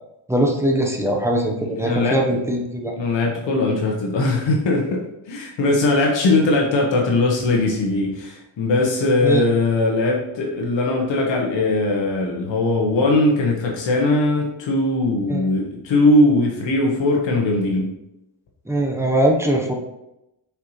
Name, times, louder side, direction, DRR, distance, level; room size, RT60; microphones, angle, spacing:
voice 1, 0.3-2.9 9.2-9.4 15.3-15.5 18.7-19.7, right 1 dB, 5° right, 1 dB, 1.0 m, -21 dB
voice 2, 1.8-2.2 3.0-17.9, left 2 dB, 70° left, 0 dB, 1.4 m, -20 dB
6.8 x 4.8 x 3.2 m, 0.88 s
cardioid pair, 110°, 46 cm